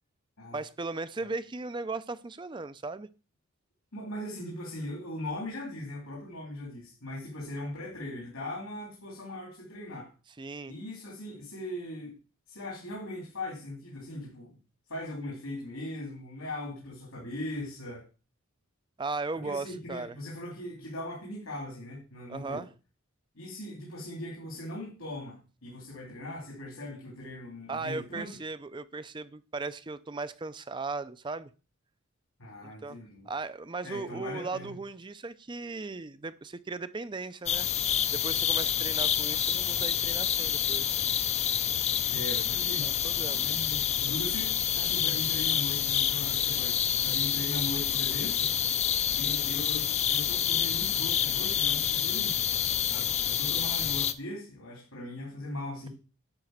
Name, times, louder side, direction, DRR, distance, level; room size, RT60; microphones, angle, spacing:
voice 1, 0.5-3.1 10.4-10.7 19.0-20.1 22.3-22.7 27.7-31.5 32.6-33.0 33.3-37.7 38.1-41.0 42.8-43.5, right 3 dB, 20° right, 14 dB, 0.4 m, -37 dB
voice 2, 3.9-10.1 10.7-12.1 12.5-14.6 14.9-18.0 19.3-22.6 23.3-28.4 32.4-33.3 33.8-34.7 42.1-42.9 43.3-48.5 49.2-52.4 52.8-55.9, left 1 dB, 80° left, -2 dB, 2.9 m, -39 dB
sound 1, 37.5-54.1, left 9 dB, 30° left, 0.5 m, -28 dB
10.5 x 4.2 x 7.8 m, 0.34 s
head